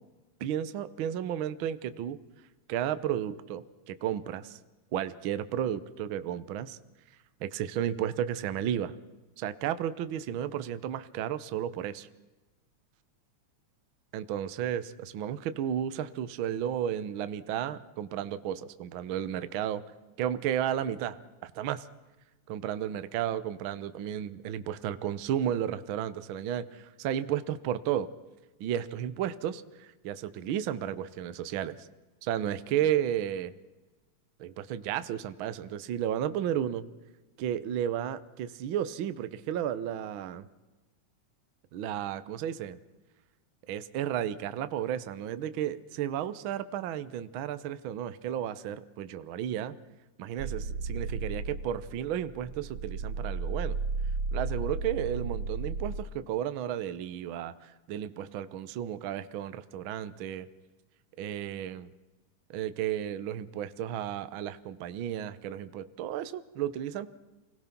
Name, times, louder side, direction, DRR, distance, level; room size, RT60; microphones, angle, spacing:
voice 1, 0.4-2.2 2.7-4.6 4.9-6.8 7.4-8.9 9.4-12.1 14.1-19.8 20.2-21.9 22.5-28.1 28.6-31.9 32.2-33.5 34.4-36.8 37.4-40.5 41.7-42.8 43.7-49.8 50.2-53.8 54.3-60.5 61.2-61.9 62.5-67.1, right 10 dB, 85° right, 12 dB, 1.1 m, -33 dB
sound 1, 50.4-56.0, right 4 dB, 70° right, 1.4 m, -34 dB
28.5 x 18.5 x 5.9 m, 1.1 s
omnidirectional pair, 3.5 m